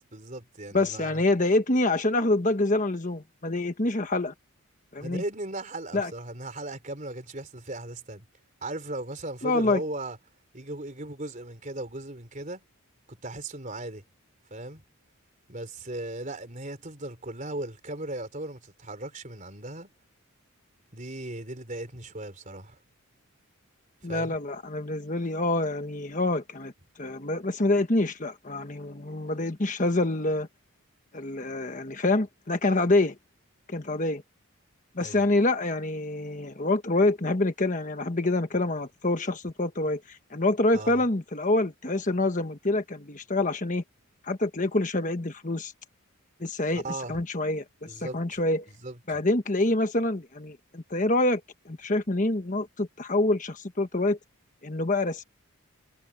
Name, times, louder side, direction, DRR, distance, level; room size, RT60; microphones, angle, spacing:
voice 1, 0.1-1.2 5.0-8.3 8.6-10.2 10.5-12.6 13.1-14.0 14.5-14.8 15.5-19.9 20.9-22.8 24.1-24.4 35.0-35.2 40.7-41.0 46.8-47.2 47.8-48.4 48.7-49.2, right 2 dB, 35° right, 3.9 m, -37 dB
voice 2, 0.7-4.3 4.9-5.2 5.9-6.1 9.4-9.8 24.0-26.7 27.0-30.5 31.1-33.1 33.7-34.2 34.9-43.8 44.2-45.7 46.4-46.8 47.1-48.7 49.1-51.4 51.6-54.2 54.6-55.2, left 2 dB, 35° left, 1.3 m, -26 dB
head